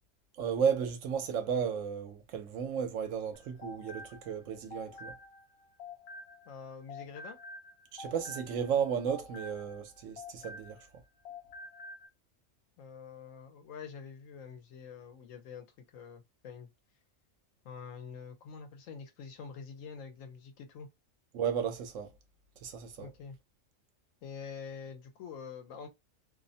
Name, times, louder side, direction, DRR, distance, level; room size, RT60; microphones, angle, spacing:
voice 1, 0.4-5.1 7.9-10.8 21.3-22.1 22.6-23.1, right 7 dB, 75° right, 1.0 m, -33 dB
sound 1, 3.3-6.6 6.9-11.0 11.2-12.1, left 2 dB, 65° left, 0.8 m, -48 dB
voice 2, 6.5-7.4 12.8-15.7 15.9-16.7 17.6-20.9 23.0-23.4 24.2-25.9, left 6 dB, 80° left, 1.0 m, -46 dB
2.6 x 2.1 x 2.6 m
omnidirectional pair, 1.4 m